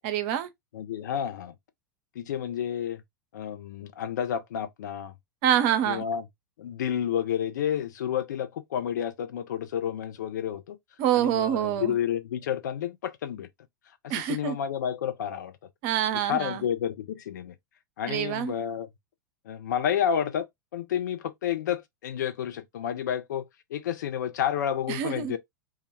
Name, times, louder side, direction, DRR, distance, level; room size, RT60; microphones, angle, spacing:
voice 1, 0.0-0.5 5.4-6.1 11.0-12.0 14.1-14.6 15.8-16.6 18.1-18.5 24.9-25.3, right 10 dB, 45° right, 0.5 m, -26 dB
voice 2, 0.7-1.5 2.2-3.0 3.3-5.1 5.9-6.2 6.6-10.8 11.1-13.5 14.0-15.5 16.2-17.5 18.0-18.9 19.5-20.5 20.7-25.4, left 9 dB, 65° left, 0.5 m, -30 dB
2.3 x 2.1 x 3.2 m
figure-of-eight pair, 90°, 11 cm